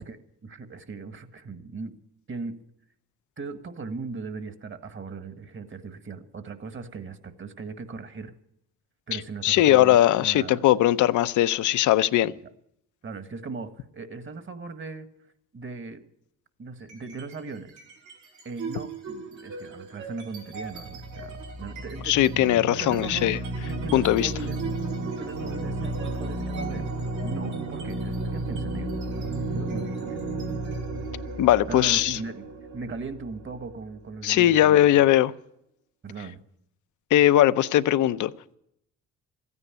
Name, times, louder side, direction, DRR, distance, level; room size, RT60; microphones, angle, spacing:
voice 1, 0.0-2.0 2.3-2.5 3.4-8.3 9.1-10.6 13.0-15.1 15.5-16.0 16.6-17.7 18.4-23.3 23.7-24.6 25.2-26.9 27.2-30.3 31.7-32.4 32.7-35.1 36.0-36.4, right 4 dB, 40° right, 1.6 m, -38 dB
voice 2, 9.4-12.3 22.1-23.4 23.9-24.3 31.4-32.2 34.2-35.3 37.1-38.3, left 13 dB, 80° left, 0.7 m, -20 dB
sound 1, 16.8-17.3 17.7-34.3, right 2 dB, 85° right, 5.6 m, -33 dB
14.5 x 9.7 x 9.9 m
cardioid pair, 90°, 30 cm